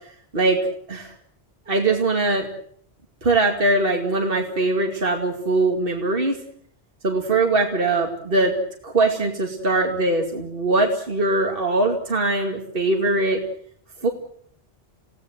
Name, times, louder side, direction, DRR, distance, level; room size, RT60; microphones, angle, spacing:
voice 1, 1.7-2.5 3.2-6.4 7.0-8.5 8.8-13.4 14.0-14.1, right 2 dB, 55° right, 2 dB, 2.6 m, -21 dB
28.0 x 17.0 x 7.9 m, 0.65 s
omnidirectional pair, 1.1 m